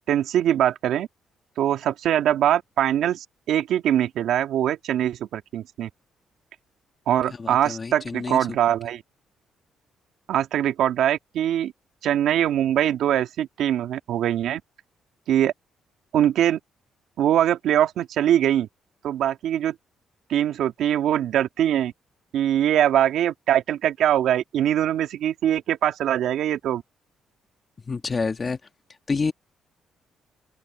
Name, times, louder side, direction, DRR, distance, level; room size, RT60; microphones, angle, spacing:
voice 1, 0.1-1.1 1.6-5.9 7.1-9.0 10.3-11.7 12.0-14.6 15.3-15.5 16.1-16.6 17.2-18.7 19.0-19.7 20.3-21.9 22.3-26.8, right 11 dB, 80° right, 2.2 m, -22 dB
voice 2, 7.3-8.8 27.9-28.6 29.1-29.3, left 4 dB, 35° left, 1.7 m, -28 dB
open air
cardioid pair, 90°, 0 cm